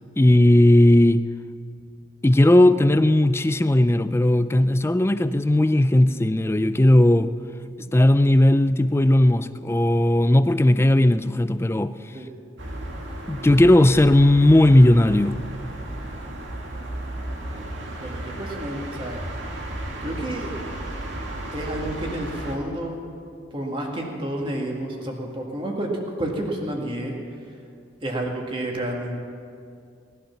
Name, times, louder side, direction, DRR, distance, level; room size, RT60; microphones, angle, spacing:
voice 1, 0.2-1.3 2.2-7.3 7.9-11.9 13.3-15.4, left 1 dB, 15° left, 0.4 m, -17 dB
sound 1, 12.6-22.6, right 1 dB, 85° right, 2.1 m, -34 dB
voice 2, 18.0-19.2 20.0-20.5 21.5-23.0 23.5-25.9 26.2-27.1 28.0-29.2, right 1 dB, 30° right, 2.0 m, -30 dB
18.5 x 11.5 x 5.9 m
head